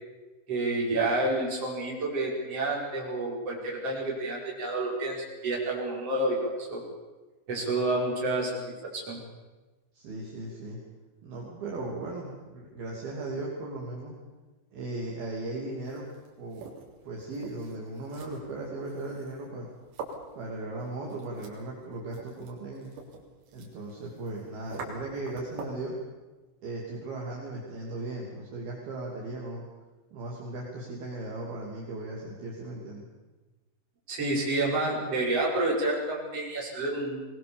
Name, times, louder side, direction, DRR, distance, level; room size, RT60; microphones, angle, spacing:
voice 1, 0.5-6.8 7.5-9.2 34.1-37.3, right 2 dB, 30° right, -2 dB, 6.1 m, -29 dB
voice 2, 9.9-10.8 11.2-14.1 14.7-16.7 17.0-19.7 20.4-22.9 23.5-26.0 26.6-29.6 30.1-33.1, right 2 dB, 55° right, -3 dB, 4.6 m, -37 dB
sound 1, 15.7-25.9, right 4 dB, 80° right, 5.9 m, -46 dB
23.5 x 21.0 x 7.2 m, 1.2 s
omnidirectional pair, 5.6 m